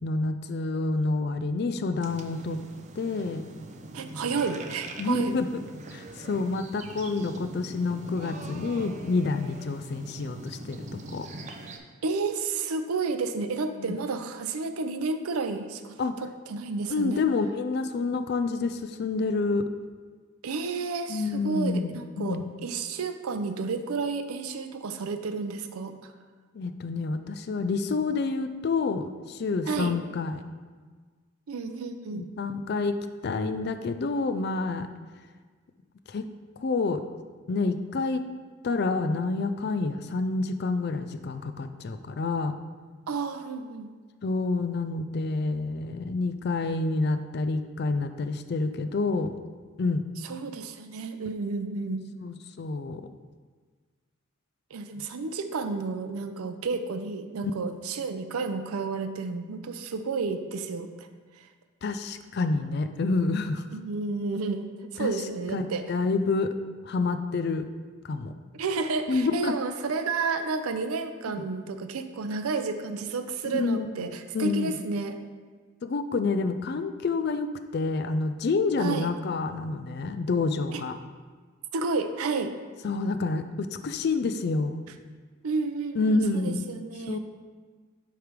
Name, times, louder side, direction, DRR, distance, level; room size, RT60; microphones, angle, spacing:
voice 1, 0.0-2.6 3.0-3.4 5.0-5.5 5.9-10.8 11.1-11.3 13.8-13.9 16.0-16.1 16.9-19.7 21.1-22.5 26.5-30.4 32.1-32.9 33.2-34.9 36.1-36.2 36.6-37.0 37.5-38.3 38.6-42.6 44.2-49.3 49.8-50.0 52.2-53.1 57.4-57.5 61.8-63.7 65.0-65.1 65.5-66.5 66.8-67.6 68.0-68.3 69.1-69.5 71.3-71.4 73.5-74.1 74.3-74.7 75.8-81.0 82.8-84.8 86.0-86.7 87.1-87.2, left 3 dB, 50° left, 9 dB, 0.3 m, -28 dB
sound 1, 2.0-11.8, right 2 dB, 30° right, 0.4 m, -42 dB
voice 2, 3.9-5.3 12.0-17.3 20.4-26.1 29.7-30.0 31.5-32.2 43.1-43.9 50.2-52.0 54.7-61.1 61.4-61.5 63.7-65.9 68.5-75.2 78.8-79.1 80.7-80.8 81.7-82.5 85.4-87.2, right 4 dB, 85° right, 9 dB, 0.5 m, -31 dB
7.8 x 3.3 x 5.1 m, 1.5 s
head